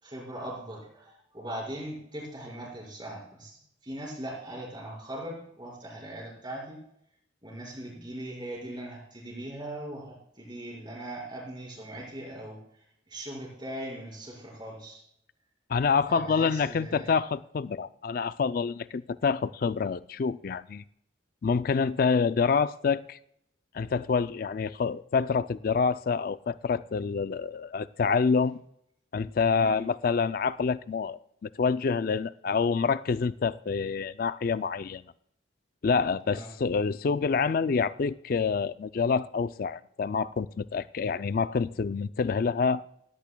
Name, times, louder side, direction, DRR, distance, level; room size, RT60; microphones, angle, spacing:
voice 1, 0.0-6.8 7.4-15.0 16.1-17.2 29.6-29.8 36.3-36.5, right 1 dB, 25° right, 5.1 m, -40 dB
voice 2, 15.7-20.8 21.4-23.2 23.7-28.6 29.1-35.0 35.8-42.8, left 5 dB, 45° left, 0.3 m, -27 dB
16.5 x 16.5 x 2.3 m
head